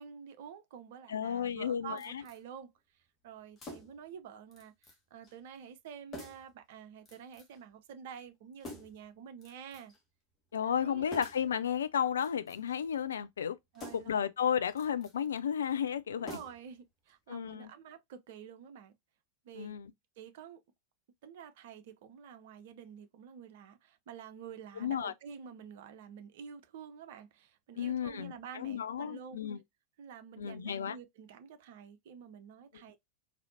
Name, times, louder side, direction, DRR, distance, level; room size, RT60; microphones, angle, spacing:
voice 1, 0.0-9.9 10.6-11.1 13.7-14.2 16.1-18.9 19.4-19.8 20.2-20.6 21.2-29.4 30.0-33.0, right 7 dB, 50° right, 0.6 m, -49 dB
voice 2, 1.1-2.2 10.5-13.6 13.9-16.3 17.3-17.7 19.5-19.9 24.8-25.1 27.8-29.6 30.4-31.0, left 8 dB, 65° left, 0.4 m, -33 dB
sound 1, 2.0-2.4 3.6-4.1 4.5-5.0 5.2-5.4 6.1-6.5 7.1-7.6 8.6-9.1 9.4-10.0 11.1-11.5 12.1-12.8 13.7-14.2 14.7-15.2 16.2-16.8 17.1-17.2, left 1 dB, 20° left, 1.4 m, -48 dB
4.2 x 2.7 x 2.6 m
figure-of-eight pair, 90°, 0 cm